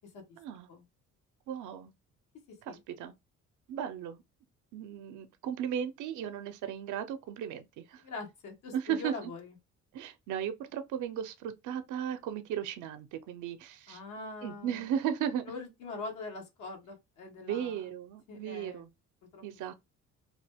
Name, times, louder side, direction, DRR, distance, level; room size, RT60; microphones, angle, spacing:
voice 1, 0.4-0.7 1.5-1.9 2.7-3.1 3.7-4.2 4.7-8.0 8.7-9.1 9.9-14.0 14.4-15.4 17.4-18.9 19.4-19.7, right 9 dB, 80° right, 0.5 m, -36 dB
voice 2, 8.0-9.6 13.9-14.9 15.5-17.8 18.3-18.8 19.3-19.4, left 3 dB, 90° left, 1.1 m, -43 dB
2.9 x 2.1 x 3.3 m
cardioid pair, 90°, 30 cm